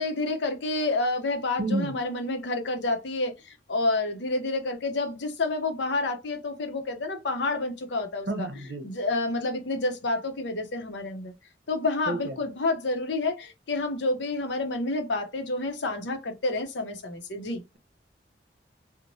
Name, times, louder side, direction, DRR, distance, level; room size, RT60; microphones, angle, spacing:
voice 1, 0.0-3.4 3.7-8.5 8.8-11.3 11.7-17.6, left 2 dB, 75° left, 0.6 m, -29 dB
voice 2, 1.6-2.0 8.3-8.9 12.1-12.4, right 2 dB, 60° right, 0.7 m, -30 dB
2.9 x 2.1 x 2.6 m
head